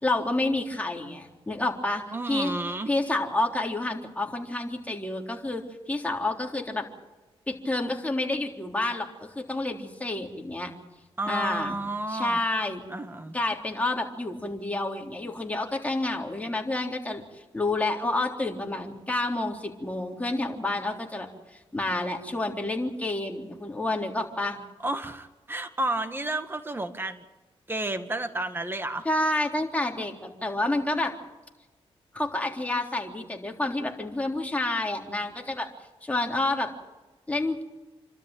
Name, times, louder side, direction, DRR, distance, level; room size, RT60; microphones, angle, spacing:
voice 1, 0.0-2.5 2.9-6.9 7.5-10.7 11.3-11.8 12.1-12.8 13.3-17.2 17.5-24.6 29.1-31.1 32.1-35.7 36.0-36.7 37.3-37.6, left 2 dB, 15° left, 1 dB, 3.7 m, -29 dB
voice 2, 2.1-2.9 11.2-12.4 12.9-13.4 24.8-27.3 27.7-29.0, right 2 dB, 20° right, 8 dB, 2.0 m, -31 dB
28.0 x 13.0 x 9.1 m, 1.2 s
cardioid pair, 80°, 10 cm